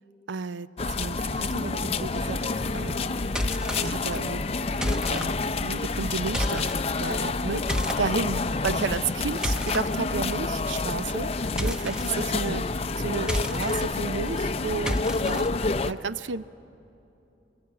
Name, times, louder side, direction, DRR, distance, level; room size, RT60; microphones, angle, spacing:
voice 1, 0.3-2.5 2.7-3.2 3.8-6.7 7.0-12.7 13.0-16.4, right 5 dB, 80° right, 15 dB, 0.5 m, -33 dB
sound 1, 0.8-15.9, left 3 dB, 35° left, 0.6 m, -28 dB
sound 2, 3.4-3.9 4.8-5.3 6.3-6.8 7.7-8.0 9.1-9.8 11.6-12.1 13.2-13.8 14.9-15.5, left 1 dB, 5° right, 0.9 m, -30 dB
27.0 x 22.5 x 8.5 m, 2.9 s
head